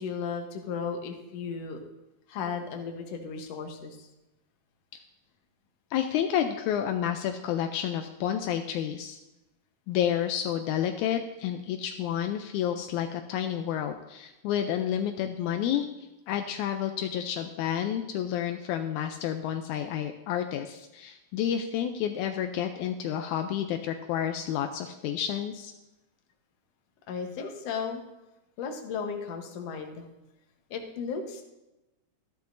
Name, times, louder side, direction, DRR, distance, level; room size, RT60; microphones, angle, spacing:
voice 1, 0.0-1.8 2.3-4.1 27.1-28.0 28.6-30.1 30.7-31.4, left 5 dB, 65° left, 4 dB, 2.1 m, -35 dB
voice 2, 5.9-9.2 9.9-25.7, left 10 dB, 85° left, 6 dB, 2.0 m, -30 dB
14.0 x 11.0 x 2.6 m, 0.97 s
omnidirectional pair, 3.4 m